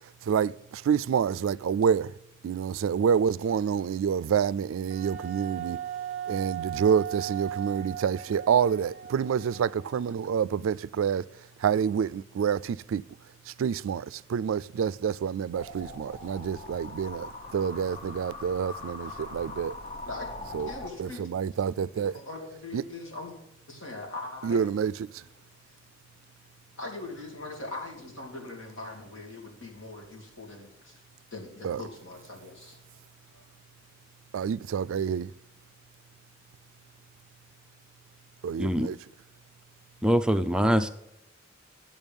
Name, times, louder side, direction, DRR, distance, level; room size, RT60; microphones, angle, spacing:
voice 1, 0.3-2.1 2.4-5.8 6.3-11.2 11.6-13.0 13.6-19.7 20.5-20.7 21.0-22.1 22.7-22.8 24.4-24.9 31.6-31.8 34.3-35.3 38.4-39.0, right 7 dB, 80° right, 0.3 m, -27 dB
Wind instrument woodwind instrument, 4.9-10.4, right 10 dB, 45° right, 0.7 m, -38 dB
sound 1, 15.6-20.9, left 2 dB, 35° left, 1.0 m, -41 dB
voice 2, 20.1-21.2 21.8-23.4 23.7-24.8 25.7-25.8 26.8-31.0 31.3-32.8 33.3-33.4, left 2 dB, 80° left, 2.7 m, -41 dB
voice 3, 40.0-40.9, equal, 5° right, 0.4 m, -23 dB
10.5 x 7.2 x 5.3 m
head